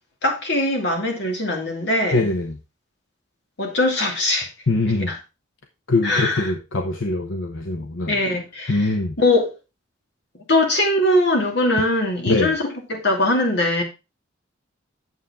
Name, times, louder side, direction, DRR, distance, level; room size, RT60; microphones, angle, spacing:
voice 1, 0.2-2.3 3.6-4.5 4.9-5.2 6.0-6.5 8.1-9.5 10.5-13.8, left 1 dB, 60° left, 2.7 m, -21 dB
voice 2, 2.1-2.6 4.7-5.1 5.9-8.1 8.7-9.1 12.3-12.5, left 2 dB, 75° left, 0.9 m, -22 dB
9.4 x 7.3 x 3.7 m
head